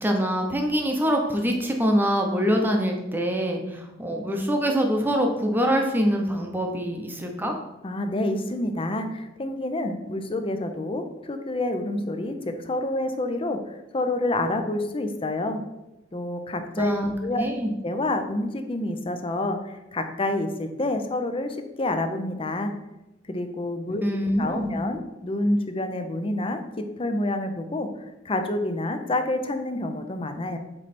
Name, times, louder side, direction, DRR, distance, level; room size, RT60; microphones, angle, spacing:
voice 1, 0.0-7.6 16.8-17.7 24.0-24.7, equal, 10° right, 2 dB, 0.8 m, -24 dB
voice 2, 7.8-15.6 16.1-16.9 17.2-17.5 17.8-22.7 23.3-24.0 24.4-27.9 28.2-30.6, left 1 dB, 30° left, 7 dB, 0.5 m, -28 dB
7.5 x 3.2 x 4.2 m, 0.96 s
head